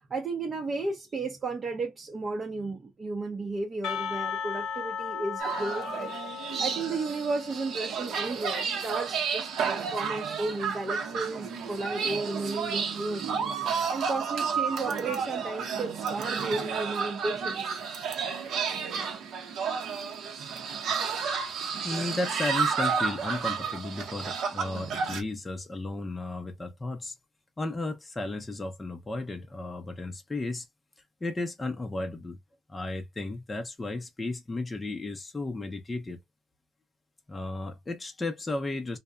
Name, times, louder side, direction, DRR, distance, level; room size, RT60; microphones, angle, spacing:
voice 1, 0.1-13.3 13.6-17.8, right 3 dB, 30° right, 0.6 m, -34 dB
Percussion, 3.8-8.7, left 7 dB, 90° left, 0.7 m, -36 dB
sound 1, 5.4-25.2, right 6 dB, 65° right, 0.7 m, -31 dB
voice 2, 21.8-27.1 27.6-30.7 31.2-32.4 32.7-36.2 37.3-39.0, left 2 dB, 15° left, 0.5 m, -34 dB
2.7 x 2.1 x 2.2 m
cardioid pair, 125°, 0 cm